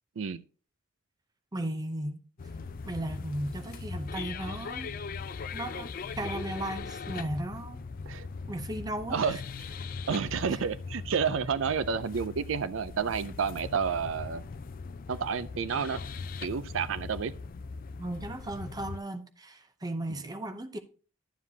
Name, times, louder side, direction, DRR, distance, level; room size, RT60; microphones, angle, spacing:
voice 1, 1.5-2.2 2.9-4.9 5.5-7.8 8.5-9.3 10.5-10.6 18.0-20.8, right 1 dB, 20° right, 0.6 m, -36 dB
sound 1, 2.4-19.0, left 4 dB, 45° left, 0.4 m, -40 dB
voice 2, 10.1-14.4 15.1-16.0 16.4-17.3, right 6 dB, 70° right, 0.4 m, -30 dB
11.5 x 7.2 x 2.7 m
head